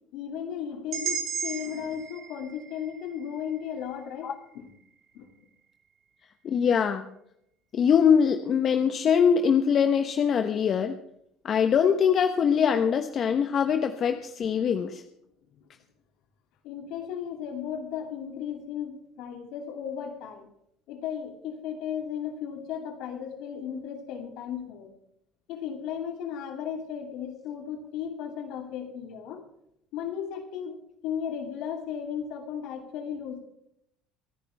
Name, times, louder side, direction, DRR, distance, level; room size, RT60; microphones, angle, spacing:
voice 1, 0.1-4.7 5.1-5.3 14.6-14.7 15.5-15.6 16.6-20.5 20.9-24.9 25.5-29.4 29.9-30.8 31.0-33.4, left 8 dB, 70° left, 4 dB, 2.6 m, -35 dB
sound 1, 0.9-4.9, right 6 dB, 55° right, 3.5 m, -37 dB
voice 2, 6.4-7.1 7.7-11.0 11.4-15.0, left 7 dB, 50° left, 6 dB, 1.1 m, -23 dB
26.5 x 10.0 x 3.5 m, 0.75 s
supercardioid pair, 80°, 0 cm